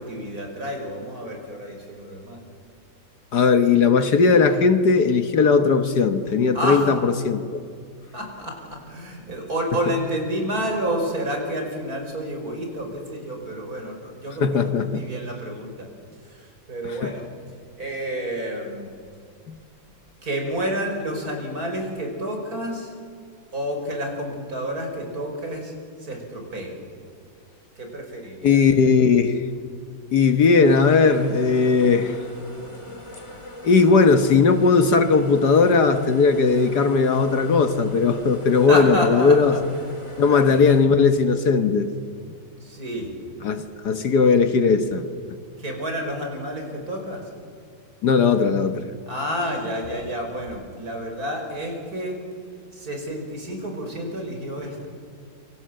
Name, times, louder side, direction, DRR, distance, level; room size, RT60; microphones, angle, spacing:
voice 1, 0.0-2.4 6.5-6.9 8.1-15.9 16.2-17.3 17.8-18.9 20.2-22.9 23.5-25.7 26.0-26.8 27.8-29.0 38.7-39.6 40.2-40.6 42.6-43.1 45.6-47.2 49.1-52.2 52.7-54.9, equal, 50° right, 3 dB, 5.7 m, -29 dB
voice 2, 3.3-7.6 14.4-15.1 16.8-17.1 19.5-19.6 28.4-29.4 30.1-32.2 33.6-39.6 40.2-41.9 43.4-45.0 48.0-48.9, left 4 dB, 60° left, 9 dB, 1.7 m, -18 dB
sound 1, 30.6-40.8, left 1 dB, 15° left, 2.7 m, -40 dB
28.5 x 25.0 x 7.7 m, 2.2 s
omnidirectional pair, 2.0 m